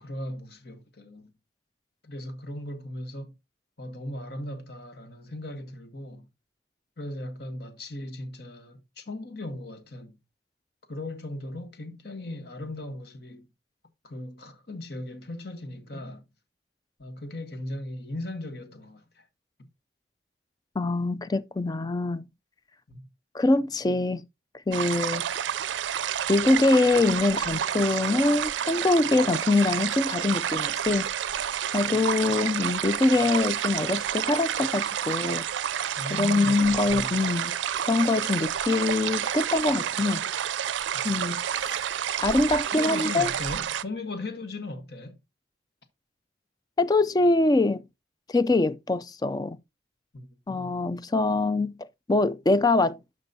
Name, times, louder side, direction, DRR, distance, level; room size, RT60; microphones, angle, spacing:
voice 1, 0.0-1.3 2.0-3.3 3.8-6.3 7.0-10.2 10.9-13.5 14.0-16.2 17.0-19.3 22.9-23.1 36.0-37.1 40.9-41.3 42.8-45.2 50.1-50.7, left 1 dB, 60° left, 1.3 m, -38 dB
voice 2, 20.8-22.2 23.3-24.2 24.7-25.2 26.3-31.1 31.7-35.4 36.2-37.5 37.9-40.2 41.0-41.8 42.2-43.3 46.8-47.8 48.3-49.6 50.5-51.7 52.1-53.0, left 2 dB, 20° left, 0.3 m, -24 dB
sound 1, 24.7-43.8, right 9 dB, 85° right, 0.4 m, -29 dB
12.0 x 5.2 x 2.7 m
head